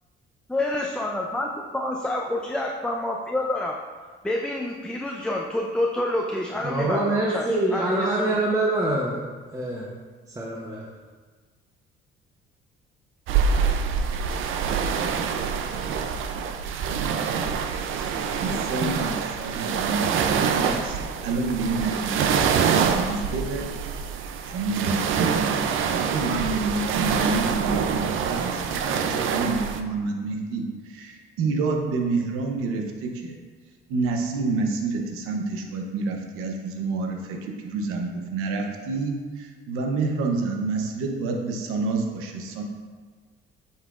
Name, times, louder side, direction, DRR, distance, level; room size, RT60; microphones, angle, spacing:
voice 1, 0.5-3.8 4.2-8.4, left 1 dB, 5° left, 0 dB, 0.5 m, -28 dB
voice 2, 6.6-9.3 9.5-9.9 10.3-10.9, right 1 dB, 15° right, -4 dB, 0.8 m, -25 dB
sound 1, 13.3-29.8, right 6 dB, 70° right, 0.5 m, -25 dB
voice 3, 18.3-21.0 21.2-23.7 24.4-25.6 26.1-33.4 33.9-42.6, right 3 dB, 90° right, 2 dB, 0.9 m, -28 dB
7.9 x 5.6 x 2.5 m, 1.4 s
cardioid pair, 105°, 21 cm